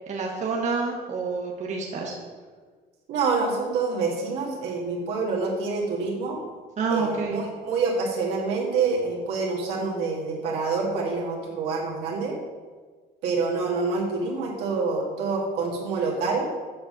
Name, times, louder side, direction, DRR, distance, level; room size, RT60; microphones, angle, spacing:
voice 1, 0.1-2.1 6.8-7.4, right 4 dB, 45° right, -1 dB, 1.3 m, -28 dB
voice 2, 3.1-6.4 6.9-12.3 13.2-16.5, right 4 dB, 85° right, -3 dB, 1.9 m, -27 dB
7.5 x 4.2 x 6.2 m, 1.5 s
cardioid pair, 110°, 17 cm